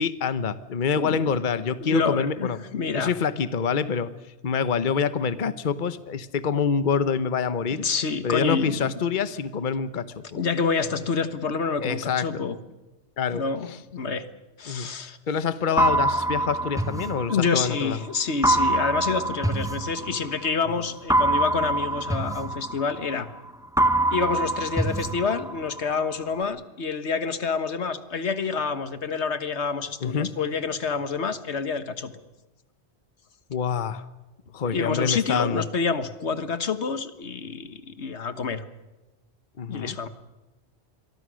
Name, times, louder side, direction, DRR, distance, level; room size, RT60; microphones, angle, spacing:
voice 1, 0.0-2.6 2.9-4.1 4.4-7.8 8.2-10.2 11.8-12.4 13.2-13.8 14.7-14.9 15.3-18.0 30.0-30.3 33.5-34.0 34.5-35.7 39.6-40.0, left 6 dB, 50° left, 13 dB, 1.1 m, -26 dB
voice 2, 1.9-3.1 7.7-8.9 10.4-12.5 13.3-13.7 13.9-14.2 14.6-15.2 17.3-23.3 24.1-32.1 34.7-38.6 39.7-40.1, left 5 dB, 75° left, 11 dB, 1.6 m, -27 dB
sound 1, 15.8-17.8 18.4-20.5 21.1-23.4 23.8-25.8, right 2 dB, 5° right, 1.2 m, -25 dB
27.0 x 23.0 x 6.3 m, 1.1 s
omnidirectional pair, 1.1 m